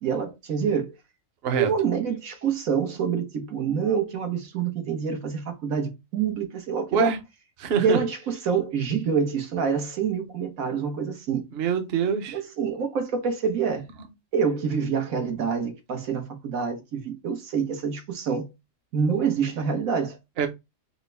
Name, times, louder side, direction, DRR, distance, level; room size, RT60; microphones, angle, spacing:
voice 1, 0.0-0.9 1.6-7.1 7.8-11.5 12.3-13.9 14.3-18.5 18.9-20.2, right 6 dB, 90° right, 1.5 m, -26 dB
voice 2, 7.6-8.0 11.5-12.4 14.0-14.1 20.4-20.5, right 6 dB, 55° right, 0.9 m, -24 dB
5.1 x 2.2 x 3.2 m
omnidirectional pair, 1.4 m